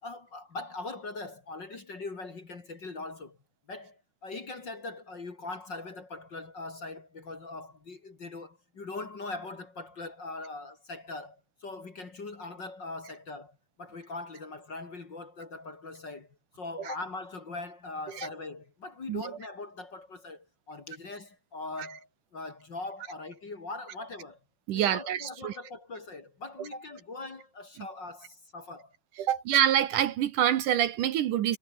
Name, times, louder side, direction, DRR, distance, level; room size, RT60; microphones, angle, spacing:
voice 1, 0.0-3.4 3.7-24.4 24.7-28.9 29.3-29.4, left 3 dB, 35° left, 2.5 m, -41 dB
voice 2, 24.7-25.5 29.2-31.6, right 11 dB, 70° right, 2.5 m, -26 dB
omnidirectional pair, 4.1 m